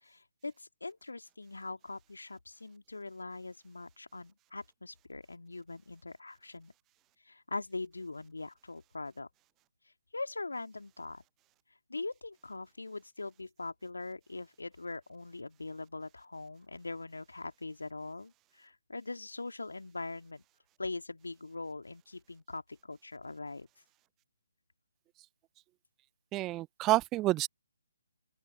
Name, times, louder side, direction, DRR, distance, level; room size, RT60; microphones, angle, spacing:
voice 1, 0.0-6.7 7.2-9.3 10.1-11.2 11.9-20.4 20.8-23.7, left 3 dB, 75° left, 2.1 m, -42 dB
voice 2, 26.3-27.5, right 17 dB, 15° right, 0.4 m, -28 dB
open air
figure-of-eight pair, 140°, 0 cm